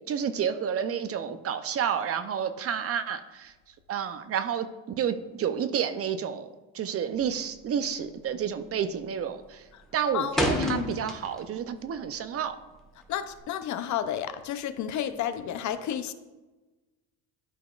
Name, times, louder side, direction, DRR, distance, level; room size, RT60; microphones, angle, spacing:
voice 1, 0.1-3.5 3.9-4.7 5.0-6.5 6.7-9.6 9.9-12.6, right 8 dB, 40° right, 0.5 m, -30 dB
sound 1, 7.1-7.5 7.8-8.2 8.5-9.0 9.3-11.6 11.9-13.4, equal, ahead, 1.2 m, -31 dB
voice 2, 10.1-11.0 13.1-16.1, left 9 dB, 50° left, 0.6 m, -31 dB
11.5 x 4.0 x 2.4 m
supercardioid pair, 90°, 37 cm